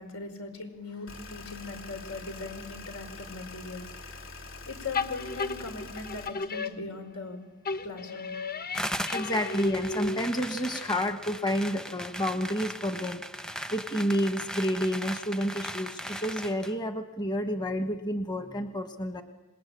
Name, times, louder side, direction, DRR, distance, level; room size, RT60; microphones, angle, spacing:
voice 1, 0.0-4.4 4.7-7.4 7.8-8.3, left 3 dB, 85° left, 8 dB, 4.9 m, -40 dB
sound 1, 1.1-6.3, left 3 dB, 65° left, 3.2 m, -44 dB
sound 2, 4.9-7.3 7.6-10.5, left 4 dB, 45° left, 1.0 m, -34 dB
sound 3, 8.7-16.7, equal, 5° left, 0.8 m, -38 dB
voice 2, 9.1-13.2 13.7-19.2, equal, 20° left, 7 dB, 1.4 m, -30 dB
27.5 x 20.5 x 8.8 m, 1.1 s
head